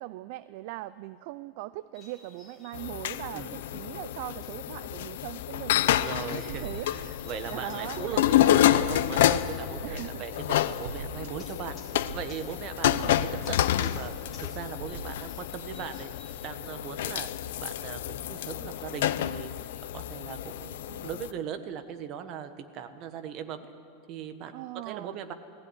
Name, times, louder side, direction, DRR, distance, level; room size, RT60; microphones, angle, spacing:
voice 1, 0.0-6.9 7.5-8.2 9.8-10.2 12.8-13.2 24.5-25.2, right 17 dB, 55° right, 15 dB, 0.5 m, -40 dB
sound 1, 1.9-20.4, left 3 dB, 20° left, 4.2 m, -58 dB
sound 2, 2.7-21.3, left 12 dB, 75° left, 0.7 m, -29 dB
voice 2, 6.0-11.7 12.1-14.1 14.4-16.1 16.4-19.5 19.9-23.7 24.1-25.3, right 8 dB, 40° right, 8 dB, 1.4 m, -39 dB
sound 3, 6.5-15.2, right 6 dB, 85° right, 1.2 m, -43 dB
19.0 x 16.0 x 9.9 m, 2.4 s
supercardioid pair, 155°, 0 cm